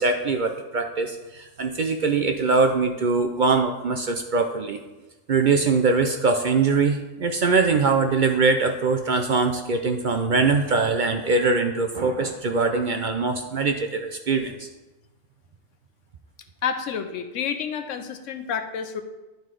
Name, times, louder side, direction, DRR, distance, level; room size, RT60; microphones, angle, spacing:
voice 1, 0.0-4.8 5.3-14.7, right 4 dB, 55° right, 5 dB, 0.5 m, -22 dB
voice 2, 16.6-19.0, left 7 dB, 85° left, 8 dB, 1.1 m, -29 dB
11.0 x 4.0 x 4.8 m, 1.1 s
omnidirectional pair, 1.3 m